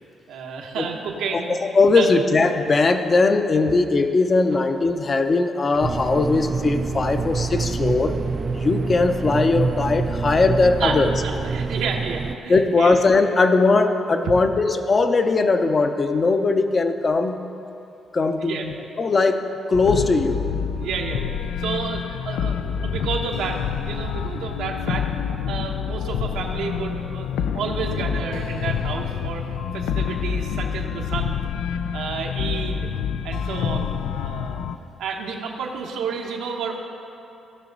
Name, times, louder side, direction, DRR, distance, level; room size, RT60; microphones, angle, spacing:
voice 1, 0.3-2.1 5.7-5.8 7.1-7.2 7.5-7.7 10.8-11.0 11.2-12.9 14.2-14.3 18.4-18.7 20.8-21.3 21.6-25.1 25.5-27.3 27.5-29.4 29.7-31.4 31.9-34.7 35.0-36.8, right 5 dB, 85° right, 0 dB, 1.1 m, -30 dB
voice 2, 1.5-8.2 8.5-11.1 12.5-17.4 18.1-19.4 19.7-20.4, left 3 dB, 35° left, 8 dB, 0.7 m, -19 dB
sound 1, 5.8-12.4, right 4 dB, 35° right, 0.4 m, -26 dB
sound 2, 19.7-34.8, left 8 dB, 85° left, 0.4 m, -27 dB
16.5 x 6.1 x 4.0 m, 2.8 s
cardioid pair, 90°, 0 cm